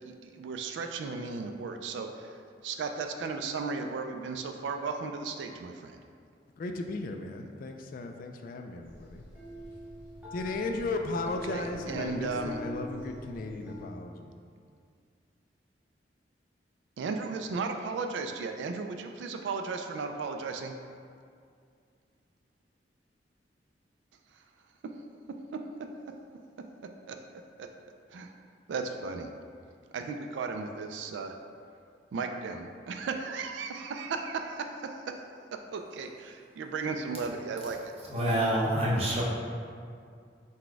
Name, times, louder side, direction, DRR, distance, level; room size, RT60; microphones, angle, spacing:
voice 1, 0.0-6.0 11.3-12.6 17.0-20.8 24.3-24.4 27.1-27.2 27.6-27.7 28.1-28.3 28.7-29.3 29.9-31.3 32.1-34.9 35.7-37.9 38.2-38.5, right 4 dB, 90° right, 5 dB, 0.3 m, -35 dB
voice 2, 6.6-9.2 10.3-14.3, left 3 dB, 50° left, 4 dB, 0.3 m, -36 dB
sound 1, 8.8-13.9, left 1 dB, 10° right, 1.2 m, -43 dB
voice 3, 38.1-39.2, right 1 dB, 35° right, -5 dB, 0.8 m, -26 dB
4.1 x 2.2 x 4.5 m, 2.2 s
head